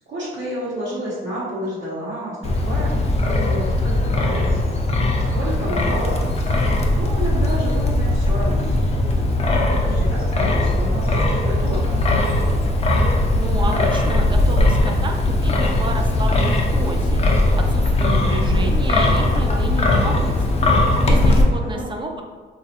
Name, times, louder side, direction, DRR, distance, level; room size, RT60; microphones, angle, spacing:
voice 1, 0.1-9.2 9.8-12.6 18.4-18.7 21.6-21.8, equal, 70° right, -10 dB, 0.9 m, -31 dB
Wind, 2.4-21.4, left 1 dB, 30° left, 0.5 m, -19 dB
voice 2, 13.4-22.2, right 2 dB, 25° right, 3 dB, 0.4 m, -30 dB
3.0 x 2.4 x 2.8 m, 1.5 s
cardioid pair, 90°, 20 cm